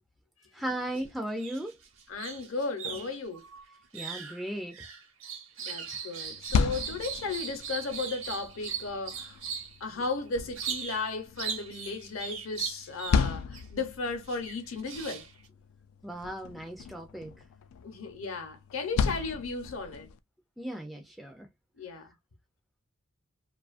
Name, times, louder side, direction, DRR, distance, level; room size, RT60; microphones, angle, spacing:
voice 1, 0.5-1.8 3.9-4.8 16.0-17.3 20.6-21.5, right 1 dB, ahead, 0.3 m, -36 dB
sound 1, 0.7-1.0 1.3-9.8 10.5-11.1 11.4-13.6 14.3-15.5, right 7 dB, 65° right, 0.8 m, -39 dB
voice 2, 2.1-3.5 5.6-9.4 9.8-15.3 17.8-20.1 21.8-22.1, left 3 dB, 70° left, 0.7 m, -35 dB
sound 2, 6.2-20.2, left 6 dB, 90° left, 0.3 m, -35 dB
2.6 x 2.4 x 2.4 m
head